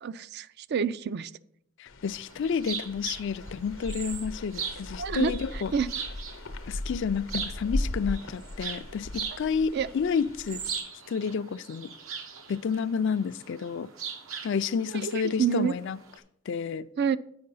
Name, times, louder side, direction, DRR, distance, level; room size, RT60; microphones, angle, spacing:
voice 1, 0.0-1.3 5.0-5.9 9.7-9.9 14.9-15.7 17.0-17.2, right 7 dB, 55° right, 15 dB, 0.4 m, -28 dB
voice 2, 1.8-5.7 6.7-10.6 11.1-11.9 12.5-13.9 14.4-16.0 16.5-16.9, left 6 dB, 60° left, 14 dB, 0.4 m, -30 dB
sound 1, 1.9-10.8, left 1 dB, 85° left, 0.8 m, -38 dB
sound 2, 2.1-16.2, right 6 dB, 85° right, 1.1 m, -40 dB
8.6 x 5.3 x 5.6 m, 0.70 s
head